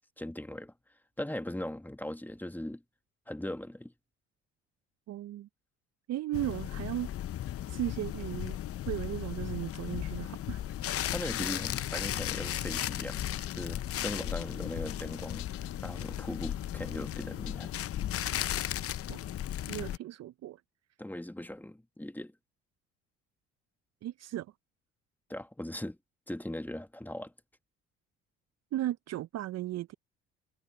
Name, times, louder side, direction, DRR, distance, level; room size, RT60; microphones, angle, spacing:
voice 1, 0.2-0.7 1.2-2.8 3.3-3.9 11.1-13.3 13.6-15.5 15.8-17.7 21.0-22.3 25.3-26.0 26.3-27.3, left 1 dB, 5° left, 2.3 m, -39 dB
voice 2, 5.1-5.5 6.1-7.1 7.7-8.6 8.9-10.6 19.1-19.2 19.7-20.6 24.0-24.5 28.7-29.9, right 13 dB, 55° right, 0.8 m, -36 dB
sound 1, 6.3-20.0, left 11 dB, 45° left, 0.8 m, -35 dB
sound 2, 10.7-19.0, left 27 dB, 75° left, 1.8 m, -52 dB
hypercardioid pair, 55°, 32 cm